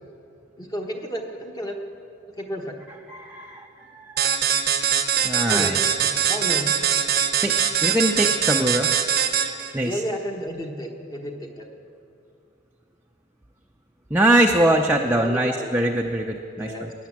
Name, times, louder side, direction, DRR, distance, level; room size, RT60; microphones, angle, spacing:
voice 1, 0.6-1.8 2.4-2.8 5.5-6.7 9.8-11.7 15.0-15.7 16.5-16.9, equal, 20° left, 2 dB, 1.2 m, -32 dB
voice 2, 3.1-4.4 5.2-5.8 7.4-8.9 9.7-10.0 14.1-16.9, right 1 dB, 10° right, 1 dB, 0.6 m, -22 dB
sound 1, 4.2-9.7, right 8 dB, 50° right, 0.8 m, -22 dB
16.5 x 10.0 x 7.3 m, 2.5 s
head